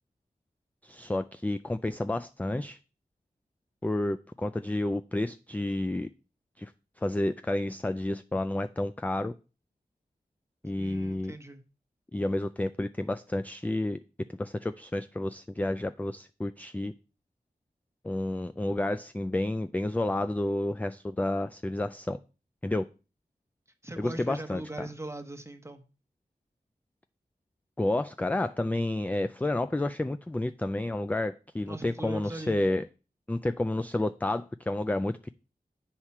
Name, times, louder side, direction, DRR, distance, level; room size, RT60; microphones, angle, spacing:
voice 1, 0.8-2.8 3.8-6.1 6.6-6.7 7.0-9.3 10.6-11.3 12.1-14.0 14.3-16.9 18.0-22.2 22.6-22.9 24.0-24.9 27.8-32.9 33.3-35.2, left 1 dB, 10° left, 0.3 m, -30 dB
voice 2, 10.8-11.6 23.8-25.8 31.6-32.7, right 2 dB, 15° right, 1.1 m, -40 dB
8.3 x 4.3 x 5.9 m
wide cardioid pair, 65°, 16 cm